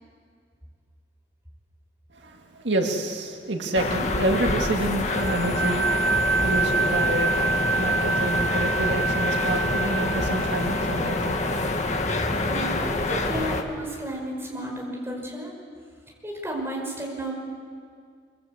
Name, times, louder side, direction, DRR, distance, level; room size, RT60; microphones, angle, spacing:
voice 1, 2.1-5.9 6.4-11.4, right 1 dB, 80° right, 2 dB, 2.0 m, -28 dB
sound 1, 3.7-13.6, left 2 dB, 40° left, 1.7 m, -26 dB
sound 2, 5.1-11.5, right 4 dB, 50° right, 0.8 m, -27 dB
voice 2, 12.4-15.5 16.2-17.4, right 1 dB, 15° right, -1 dB, 5.4 m, -32 dB
24.0 x 24.0 x 8.2 m, 2.1 s
head